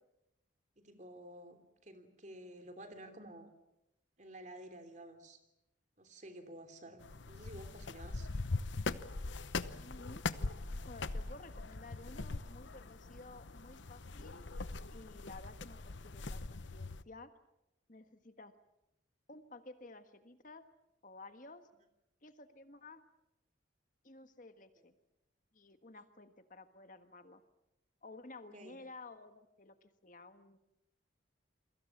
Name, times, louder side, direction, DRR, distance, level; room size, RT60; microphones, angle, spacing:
voice 1, 0.8-3.5 4.2-5.4 6.0-8.3 28.5-28.8, right 1 dB, 40° right, 7 dB, 3.2 m, -52 dB
sound 1, 7.0-17.0, left 3 dB, 70° left, 0.9 m, -41 dB
voice 2, 9.7-10.2 10.9-14.4 14.9-17.3 17.9-18.5 19.3-20.6 21.0-21.7 22.2-23.0 24.0-24.9 25.5-27.4 28.0-30.6, left 2 dB, 40° left, 9 dB, 1.5 m, -53 dB
29.0 x 23.0 x 7.3 m, 0.86 s
head